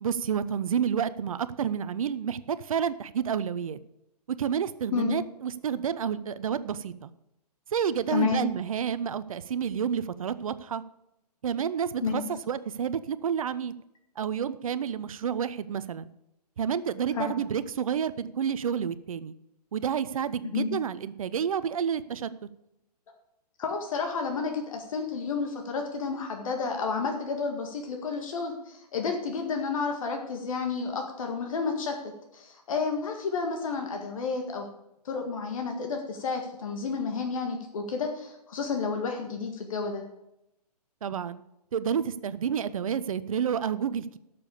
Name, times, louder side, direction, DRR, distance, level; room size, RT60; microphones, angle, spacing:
voice 1, 0.0-3.8 4.3-7.1 7.7-10.8 11.4-13.7 14.2-16.1 16.6-19.3 19.7-22.3 41.0-41.4 41.7-44.2, right 8 dB, 60° right, 15 dB, 0.7 m, -29 dB
voice 2, 8.1-8.4 12.0-12.2 17.1-17.3 20.5-20.7 23.6-32.0 32.3-34.7 35.1-40.0, left 5 dB, 55° left, 3 dB, 1.9 m, -31 dB
12.0 x 6.9 x 6.9 m, 0.86 s
figure-of-eight pair, 125°, 21 cm